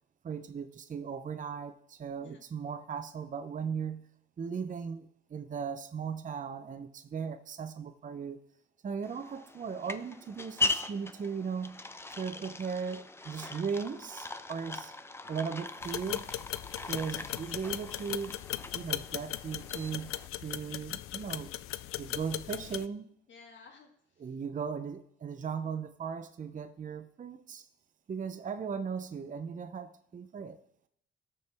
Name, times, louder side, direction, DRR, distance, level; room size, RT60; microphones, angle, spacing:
voice 1, 0.2-4.1 4.4-8.4 8.8-11.8 12.1-14.9 15.3-16.3 16.9-18.4 18.7-20.2 20.4-21.5 22.0-23.1 24.2-27.7 28.1-30.6, right 6 dB, 35° right, 9 dB, 0.6 m, -37 dB
sound 1, 9.0-20.3, left 3 dB, 10° left, 0.7 m, -40 dB
sound 2, 15.8-22.8, left 14 dB, 90° left, 0.4 m, -38 dB
voice 2, 23.3-23.9 24.2-24.3, left 5 dB, 65° left, 1 dB, 1.7 m, -54 dB
17.5 x 6.7 x 3.5 m, 0.71 s
cardioid pair, 95°, 21 cm